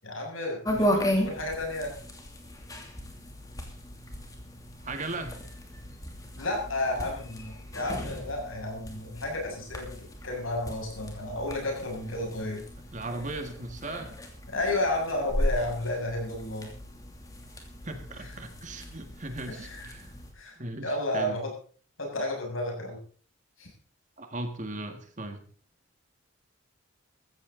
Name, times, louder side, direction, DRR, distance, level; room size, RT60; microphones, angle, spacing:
voice 1, 0.0-1.9 6.4-12.6 14.5-16.7 19.5-19.9 20.3-20.6 20.8-21.5 22.0-23.0 23.6-23.7, left 1 dB, 75° left, 0 dB, 7.1 m, -32 dB
sound 1, 0.6-20.3, equal, 15° left, 2.8 m, -36 dB
voice 2, 4.8-5.4 12.9-14.1 17.8-20.1 20.6-21.4 24.2-25.4, right 2 dB, 35° right, 7 dB, 1.9 m, -37 dB
16.0 x 14.5 x 3.9 m, 0.44 s
head